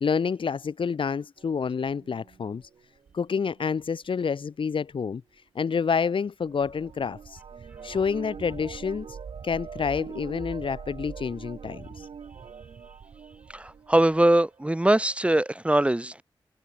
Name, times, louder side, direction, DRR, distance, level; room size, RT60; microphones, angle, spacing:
voice 1, 0.0-2.6 3.1-5.2 5.6-7.4 7.8-9.2 9.4-12.1, left 6 dB, 70° left, 1.6 m, -28 dB
sound 1, 1.4-3.8 6.4-14.2 14.5-15.2, right 6 dB, 85° right, 5.9 m, -43 dB
voice 2, 13.5-16.2, right 1 dB, 15° right, 1.8 m, -22 dB
wide cardioid pair, 85°, 9 cm